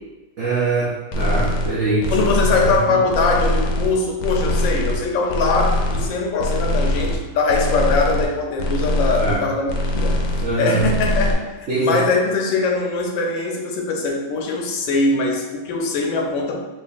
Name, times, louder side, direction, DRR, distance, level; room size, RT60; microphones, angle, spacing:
voice 1, 0.4-2.3 2.7-3.0 9.2-9.4 10.4-10.9 11.7-12.0, right 3 dB, 75° right, -7 dB, 0.6 m, -23 dB
sound 1, 1.1-1.7 2.0-2.8 3.1-3.9 4.2-5.0 5.3-6.1 6.4-7.2 7.5-8.3 8.6-9.4 9.7-10.5 10.8-11.3, equal, 70° left, 1.1 m, -22 dB
voice 2, 2.1-10.2 10.6-16.6, left 3 dB, 90° left, 1 dB, 1.4 m, -21 dB
4.3 x 2.8 x 2.4 m, 1.1 s
omnidirectional pair, 2.0 m